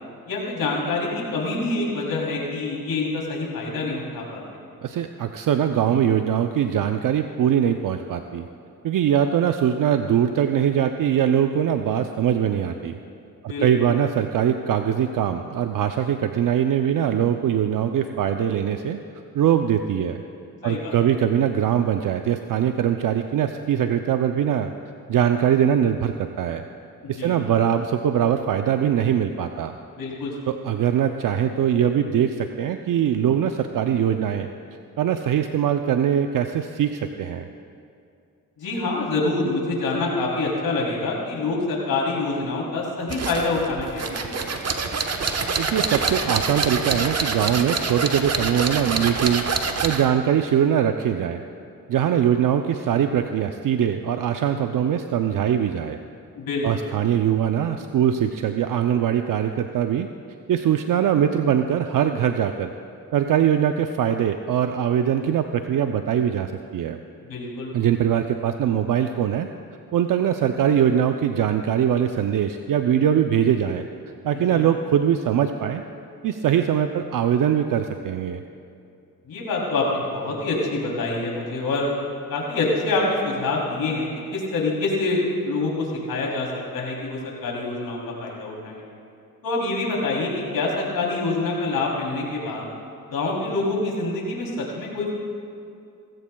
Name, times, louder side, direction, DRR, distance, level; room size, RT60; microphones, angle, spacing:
voice 1, 0.3-4.4 13.5-13.9 20.6-21.0 27.2-27.4 30.0-30.3 38.6-44.3 56.4-56.9 67.2-67.7 74.5-74.6 79.2-81.9 82.3-86.5 86.7-88.8 89.4-92.6 93.1-95.1, left 3 dB, 80° left, -2 dB, 3.2 m, -26 dB
voice 2, 4.8-8.5 8.8-13.0 13.4-19.0 19.3-20.2 20.6-24.7 25.1-26.6 27.1-29.7 30.5-34.5 35.0-37.5 45.6-49.5 49.8-51.4 51.9-56.0 56.6-60.1 60.5-62.7 63.1-67.0 67.7-69.5 69.9-73.9 74.2-75.8 76.2-78.4, right 9 dB, 65° right, 7 dB, 0.6 m, -22 dB
sound 1, 43.1-50.1, right 4 dB, 45° right, 1.1 m, -26 dB
18.5 x 15.5 x 2.3 m, 2.5 s
cardioid pair, 65°, 35 cm